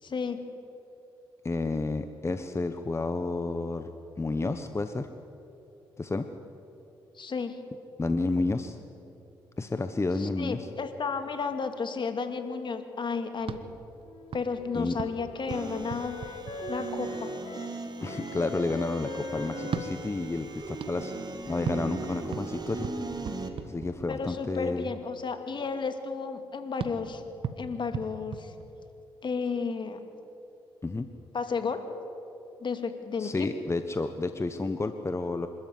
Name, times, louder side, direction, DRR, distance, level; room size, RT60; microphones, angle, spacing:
voice 1, 0.0-0.4 7.1-7.6 10.2-13.6 14.3-16.4 16.7-17.3 24.1-27.2 27.6-28.5 29.2-30.0 31.3-31.8 32.6-33.5, left 5 dB, 50° left, 7 dB, 2.6 m, -33 dB
voice 2, 1.4-3.9 4.2-5.1 6.0-6.3 8.0-8.8 9.6-10.7 14.7-15.0 18.0-21.1 21.5-22.9 23.6-24.9 30.8-31.1 33.2-35.5, left 3 dB, 25° left, 8 dB, 1.3 m, -30 dB
sound 1, 13.4-17.2 19.6-24.5 26.8-29.2, right 6 dB, 65° right, 1.5 m, -40 dB
Wind instrument woodwind instrument, 14.0-22.0, left 3 dB, 70° left, 2.6 m, -44 dB
sound 2, 15.5-23.5, right 3 dB, 45° right, 2.8 m, -38 dB
26.5 x 13.5 x 9.5 m, 2.9 s
supercardioid pair, 50°, 10 cm